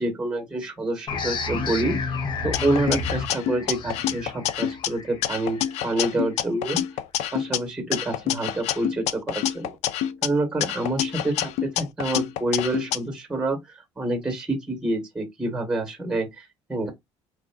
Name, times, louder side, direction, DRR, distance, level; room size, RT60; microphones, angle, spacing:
voice 1, 0.0-2.0 2.4-6.8 7.3-9.7 10.2-16.9, right 2 dB, 5° right, 1.1 m, -27 dB
sound 1, 1.1-6.4, left 4 dB, 45° left, 0.7 m, -31 dB
sound 2, 2.5-4.9 5.2-7.6 7.9-10.3 10.6-13.0, left 11 dB, 75° left, 0.4 m, -27 dB
3.3 x 2.4 x 2.3 m
cardioid pair, 110°, 11 cm